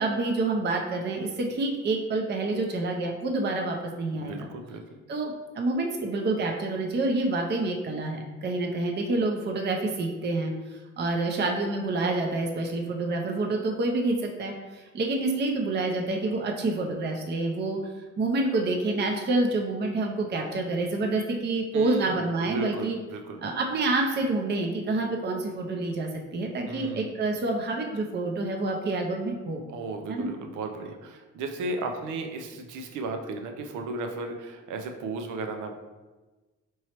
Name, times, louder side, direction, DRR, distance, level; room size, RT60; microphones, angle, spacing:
voice 1, 0.0-4.5 5.1-10.5 11.0-17.8 18.2-23.0 23.4-29.6 30.1-30.3, right 2 dB, 35° right, 1 dB, 0.6 m, -28 dB
voice 2, 4.1-4.8 21.7-22.2 22.5-23.4 26.7-27.2 29.7-35.7, right 3 dB, 85° right, 4 dB, 0.6 m, -35 dB
4.5 x 3.1 x 2.9 m, 1.2 s
cardioid pair, 90°, 30 cm